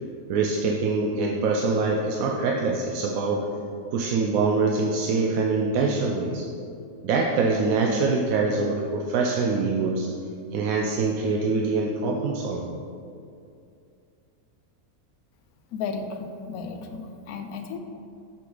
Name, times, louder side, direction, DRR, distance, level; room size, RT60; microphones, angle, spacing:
voice 1, 0.3-3.4 3.9-6.5 7.0-10.1 10.5-12.7, right 4 dB, 75° right, 0 dB, 1.0 m, -24 dB
voice 2, 15.7-17.8, left 5 dB, 85° left, 6 dB, 1.1 m, -34 dB
6.9 x 5.9 x 3.9 m, 2.5 s
omnidirectional pair, 1.5 m